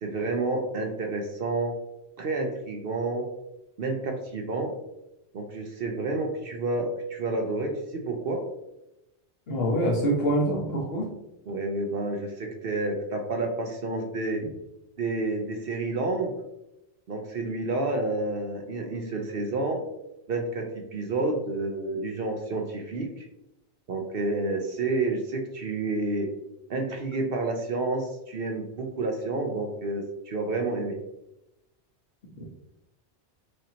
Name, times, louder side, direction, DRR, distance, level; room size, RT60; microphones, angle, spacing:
voice 1, 0.0-1.8 2.2-3.3 3.8-4.7 5.3-8.5 11.5-14.4 15.0-16.4 17.1-19.8 20.3-23.3 23.9-26.3 26.7-31.0, right 2 dB, 60° right, 3 dB, 0.8 m, -29 dB
voice 2, 9.5-11.1, right 1 dB, 60° left, -2 dB, 1.2 m, -25 dB
6.4 x 2.8 x 2.8 m, 0.90 s
omnidirectional pair, 1.2 m